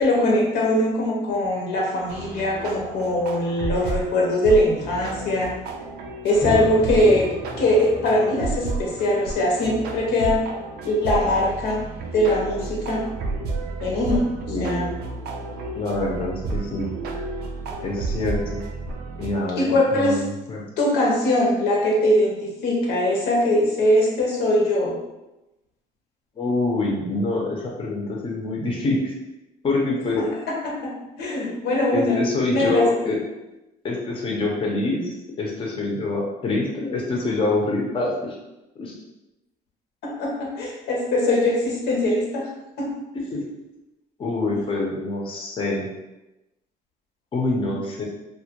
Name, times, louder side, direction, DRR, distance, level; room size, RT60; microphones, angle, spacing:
voice 1, 0.0-5.5 6.2-7.3 7.6-10.4 10.8-11.8 12.1-13.0 13.8-14.2 14.6-14.9 19.6-20.2 20.8-25.0 30.2-30.3 30.6-30.9 31.2-32.2 32.5-32.8 40.0-42.4 42.8-42.9, left 1 dB, 80° left, -2 dB, 0.7 m, -21 dB
sound 1, 2.1-19.3, right 3 dB, 70° right, 0.4 m, -32 dB
sound 2, 6.4-11.1, right 1 dB, 15° right, 0.7 m, -34 dB
voice 2, 14.5-14.9 15.7-16.9 17.8-18.6 19.2-20.6 26.4-29.1 29.6-30.2 31.9-33.2 33.8-38.4 38.8-38.9 43.3-43.4 44.2-45.9 47.3-48.0, left 2 dB, 30° left, -2 dB, 0.5 m, -25 dB
2.2 x 2.2 x 2.8 m, 0.97 s
cardioid pair, 110°, 17 cm